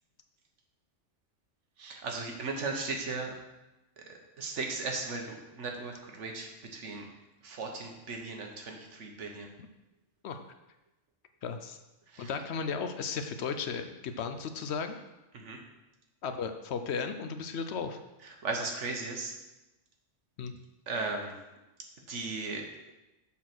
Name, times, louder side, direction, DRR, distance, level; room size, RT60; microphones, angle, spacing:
voice 1, 1.8-3.3 4.0-7.1 7.4-9.5 12.1-12.3 15.3-15.6 18.4-19.3 20.9-21.3 22.1-22.6, right 3 dB, 75° right, 2 dB, 1.4 m, -36 dB
voice 2, 11.4-11.8 12.2-15.0 16.2-18.0 20.4-20.5, left 5 dB, 65° left, 7 dB, 0.9 m, -35 dB
7.3 x 4.2 x 6.0 m, 1.0 s
omnidirectional pair, 1.2 m